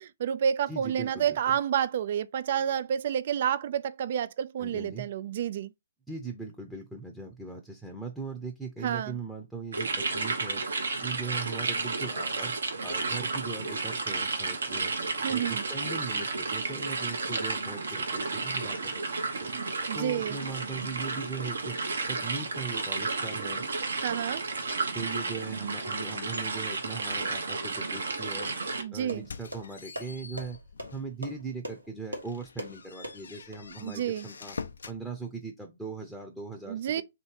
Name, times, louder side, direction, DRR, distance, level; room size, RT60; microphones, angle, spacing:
voice 1, 0.0-5.7 8.8-9.1 15.2-15.6 19.4-20.4 24.0-24.4 28.8-29.2 33.8-34.3 36.7-37.0, right 9 dB, 50° right, 0.3 m, -29 dB
voice 2, 0.7-1.4 4.6-5.1 6.1-10.6 11.0-12.5 12.8-14.9 15.3-19.0 19.3-19.5 19.9-21.8 22.1-23.7 24.9-28.5 28.9-30.6 30.9-34.6 34.9-37.0, right 4 dB, ahead, 0.7 m, -39 dB
sound 1, 9.7-28.8, right 3 dB, 70° right, 1.0 m, -32 dB
sound 2, 28.7-33.6, equal, 90° right, 1.3 m, -42 dB
sound 3, 29.1-31.2 31.6-31.8 32.2-35.0, left 5 dB, 70° left, 0.4 m, -44 dB
3.1 x 2.9 x 4.5 m
figure-of-eight pair, 130°, 0 cm